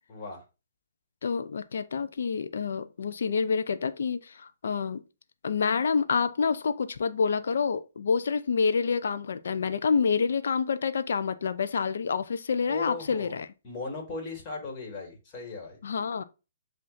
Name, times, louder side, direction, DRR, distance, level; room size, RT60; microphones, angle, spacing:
voice 1, 0.1-0.4 12.7-13.3 13.6-15.8, left 3 dB, 30° left, 1.8 m, -38 dB
voice 2, 1.2-5.0 5.4-13.5 15.8-16.2, left 5 dB, 75° left, 0.5 m, -28 dB
7.6 x 2.6 x 2.5 m
hypercardioid pair, 145°, 0 cm